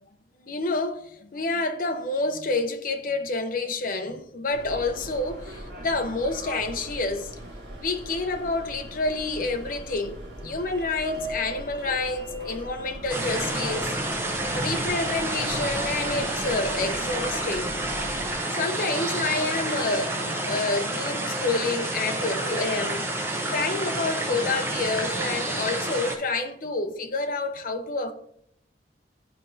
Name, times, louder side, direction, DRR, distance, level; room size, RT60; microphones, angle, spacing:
voice 1, 0.4-7.3 7.8-14.0 14.5-17.7 18.5-23.1 23.5-28.1, left 3 dB, 50° left, 0.7 m, -28 dB
Subway metro underground, 4.5-18.3, equal, 65° right, 1.8 m, -39 dB
sound 1, 13.1-26.2, right 2 dB, 15° right, 0.7 m, -29 dB
11.0 x 4.3 x 2.6 m
head